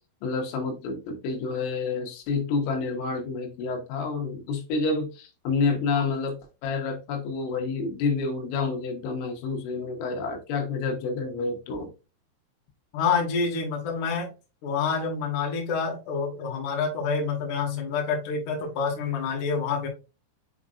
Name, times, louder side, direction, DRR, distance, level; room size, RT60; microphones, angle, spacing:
voice 1, 0.2-11.9, left 4 dB, 80° left, 3 dB, 3.9 m, -29 dB
voice 2, 12.9-14.3 14.6-19.9, left 5 dB, 55° left, 0 dB, 2.6 m, -27 dB
7.2 x 5.1 x 2.5 m, 0.29 s
omnidirectional pair, 5.7 m